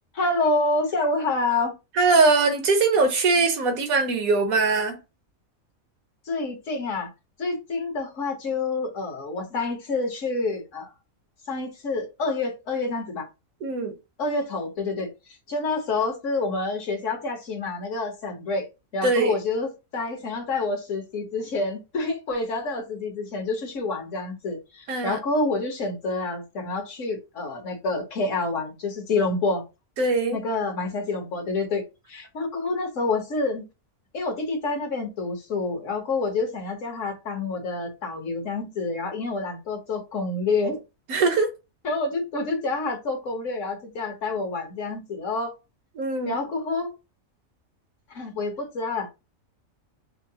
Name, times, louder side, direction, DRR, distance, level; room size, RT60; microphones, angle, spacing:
voice 1, 0.1-1.7 6.3-7.1 7.4-10.9 11.5-13.3 14.2-18.6 18.9-29.6 30.3-31.8 32.1-33.6 34.1-40.8 41.8-45.5 46.3-46.9 48.1-49.1, left 3 dB, 65° left, 1.4 m, -28 dB
voice 2, 2.0-5.0 13.6-13.9 19.0-19.3 24.9-25.2 30.0-30.4 41.1-41.5 46.0-46.4, right 3 dB, 80° right, 1.3 m, -21 dB
5.6 x 2.0 x 2.7 m
omnidirectional pair, 1.5 m